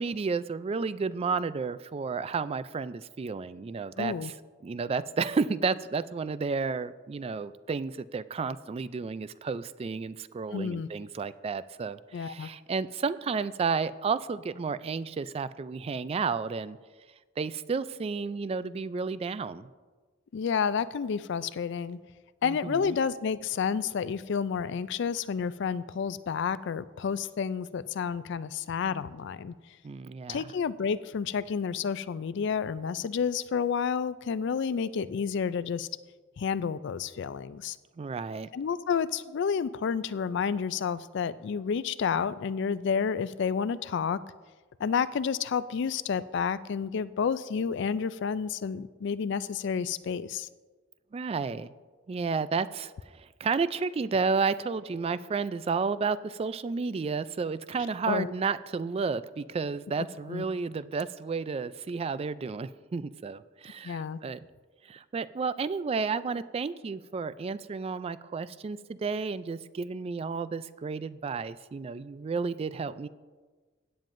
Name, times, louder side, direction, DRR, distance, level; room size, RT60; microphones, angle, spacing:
voice 1, 0.0-4.3 4.6-16.8 17.4-19.7 22.4-23.0 29.8-30.4 38.0-38.5 51.1-51.7 52.1-52.9 53.2-64.4 64.9-73.1, right 5 dB, 30° right, 16 dB, 0.3 m, -32 dB
voice 2, 4.0-4.3 10.5-10.9 12.1-12.5 20.3-22.0 22.4-29.5 30.3-35.9 36.4-37.8 38.5-44.2 44.8-50.5 58.1-58.3 60.3-60.4 63.8-64.2, left 6 dB, 65° left, 16 dB, 0.4 m, -30 dB
16.5 x 9.2 x 2.6 m, 1.4 s
head